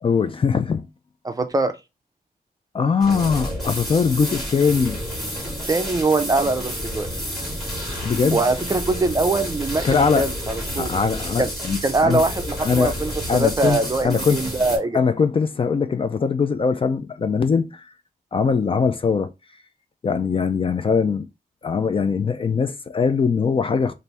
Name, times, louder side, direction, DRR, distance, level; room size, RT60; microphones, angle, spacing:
voice 1, 0.0-0.9 2.7-5.0 8.0-8.4 9.8-10.3 10.8-12.2 12.6-12.9 13.3-14.5 14.9-17.9 18.3-19.3 20.0-21.3 21.6-23.9, left 5 dB, 35° left, 0.3 m, -21 dB
voice 2, 1.2-1.7 5.7-7.1 8.3-9.8 10.2-10.9 11.4-11.5 11.8-15.0, right 3 dB, 25° right, 0.4 m, -22 dB
sound 1, 3.0-14.8, equal, ahead, 1.9 m, -30 dB
3.4 x 2.5 x 4.1 m
wide cardioid pair, 175°, 15 cm